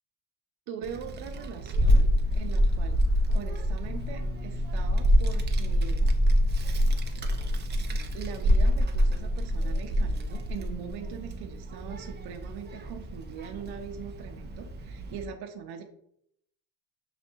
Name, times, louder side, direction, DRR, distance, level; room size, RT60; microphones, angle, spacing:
voice 1, 0.7-2.1 2.3-3.0 3.3-6.1 8.1-15.8, right 7 dB, 65° right, 4 dB, 0.6 m, -41 dB
Child speech kid speaking, 0.8-15.2, equal, 25° right, 0.4 m, -26 dB
sound 1, 3.8-11.4, left 4 dB, 35° left, 0.6 m, -48 dB
6.3 x 2.6 x 2.6 m, 0.71 s
cardioid pair, 125°, 41 cm